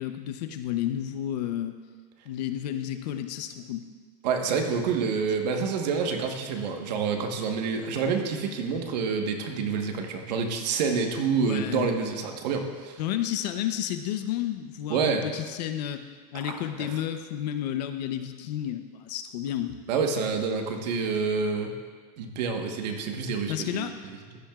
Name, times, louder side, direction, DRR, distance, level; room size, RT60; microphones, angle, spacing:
voice 1, 0.0-1.8 2.2-3.9 11.3-12.0 13.0-16.0 16.3-19.8 23.5-24.0, left 11 dB, 75° left, 8 dB, 0.8 m, -31 dB
voice 2, 4.2-13.0 14.9-15.3 16.4-16.9 19.9-21.7 22.2-23.9, right 5 dB, 80° right, 3 dB, 1.4 m, -28 dB
15.0 x 10.5 x 2.4 m, 1.6 s
supercardioid pair, 180°, 21 cm